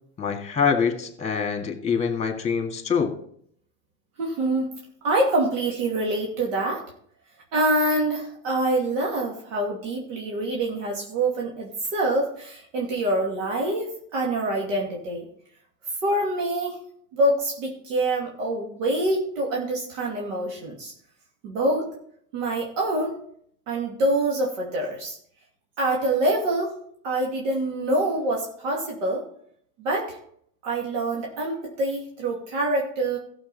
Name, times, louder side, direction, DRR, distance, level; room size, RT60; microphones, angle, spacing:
voice 1, 0.2-3.2, left 6 dB, 15° left, 5 dB, 2.1 m, -25 dB
voice 2, 4.2-4.7 5.0-6.8 7.5-15.3 16.0-16.8 17.1-20.9 21.4-21.9 22.3-23.1 23.7-25.2 25.8-26.7 27.0-29.2 29.8-30.2 30.6-33.2, right 1 dB, 85° right, -2 dB, 2.5 m, -25 dB
14.5 x 7.0 x 4.2 m, 0.65 s
supercardioid pair, 105°, 37 cm